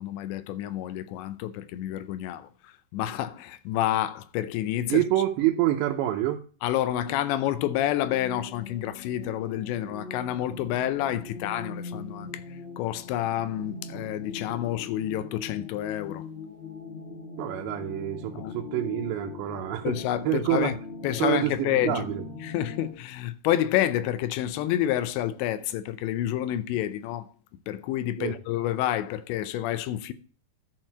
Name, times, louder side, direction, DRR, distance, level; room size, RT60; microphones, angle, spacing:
voice 1, 0.0-5.0 6.6-16.3 18.3-18.6 19.8-20.8 21.0-22.1 22.4-27.3 27.7-30.1, left 12 dB, 90° left, 3.0 m, -29 dB
voice 2, 4.9-6.4 17.4-19.9 20.3-20.7 21.1-22.2 28.2-28.4, right 13 dB, 90° right, 3.1 m, -27 dB
sound 1, 8.0-22.9, left 4 dB, 25° left, 1.4 m, -41 dB
11.0 x 4.5 x 7.3 m
omnidirectional pair, 5.0 m